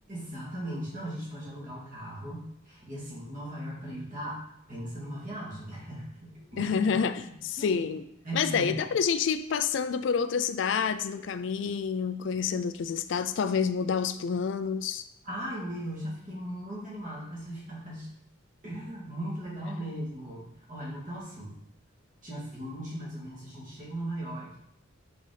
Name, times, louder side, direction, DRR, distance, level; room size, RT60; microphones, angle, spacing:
voice 1, 0.1-4.4 4.7-6.9 7.2-7.3 7.6-7.9 8.2-8.7 15.2-18.1 18.6-21.5 22.2-24.6, right 1 dB, 40° right, -5 dB, 2.0 m, -38 dB
voice 2, 6.6-8.0 8.3-15.0, left 6 dB, 60° left, 10 dB, 0.3 m, -28 dB
5.5 x 4.0 x 4.9 m, 0.78 s
head